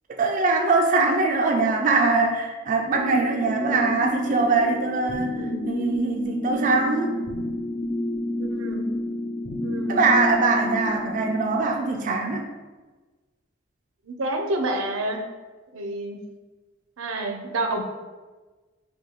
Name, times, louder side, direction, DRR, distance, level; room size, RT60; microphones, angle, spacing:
voice 1, 0.1-5.4 5.7-7.2 9.9-12.5, right 3 dB, 40° right, 2 dB, 0.3 m, -22 dB
sound 1, 2.9-11.6, left 1 dB, 35° left, 0.4 m, -29 dB
voice 2, 5.3-5.6 8.4-8.9 9.6-10.1 14.0-15.2 15.7-16.2 17.0-17.8, right 2 dB, 85° right, 4 dB, 0.6 m, -29 dB
6.4 x 2.2 x 2.9 m, 1.3 s
head